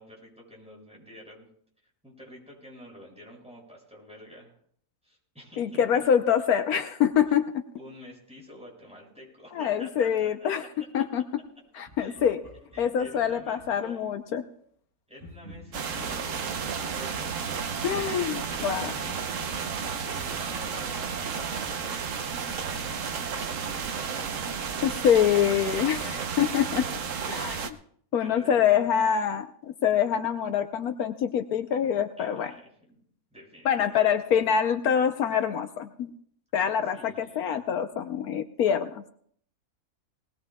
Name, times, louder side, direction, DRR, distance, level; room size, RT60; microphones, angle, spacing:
voice 1, 0.0-1.4 2.0-4.6 5.0-5.8 7.8-10.5 12.0-12.2 12.7-14.0 15.1-17.4 17.8-19.3 20.0-24.9 28.2-29.0 32.2-33.0 33.3-34.1 36.5-36.6 36.9-37.6, equal, 5° right, -3 dB, 6.5 m, -48 dB
voice 2, 5.6-7.5 9.5-10.6 10.9-11.2 11.8-12.4 12.8-14.4 17.8-18.9 24.8-26.8 27.3-27.8 28.1-32.5 33.6-36.1 36.5-39.0, left 8 dB, 80° left, 8 dB, 1.2 m, -25 dB
Laughter, 11.9-14.0 15.2-18.7 19.0-21.8, left 1 dB, 40° right, 8.3 m, -51 dB
sound 1, 15.7-27.7, right 6 dB, 60° right, 1.2 m, -32 dB
20.5 x 19.5 x 2.3 m, 0.62 s
omnidirectional pair, 1.6 m